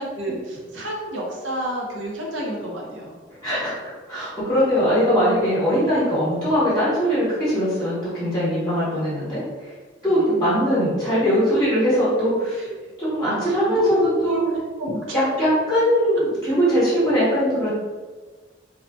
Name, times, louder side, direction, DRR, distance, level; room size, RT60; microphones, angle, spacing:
voice 1, 0.0-3.2 10.0-10.2 12.6-12.8 13.7-15.0, equal, 90° right, -2 dB, 0.7 m, -30 dB
voice 2, 3.4-9.4 10.0-12.7 13.0-14.0 14.2-14.4 15.1-17.7, equal, 20° left, -12 dB, 0.9 m, -21 dB
2.7 x 2.1 x 2.6 m, 1.3 s
head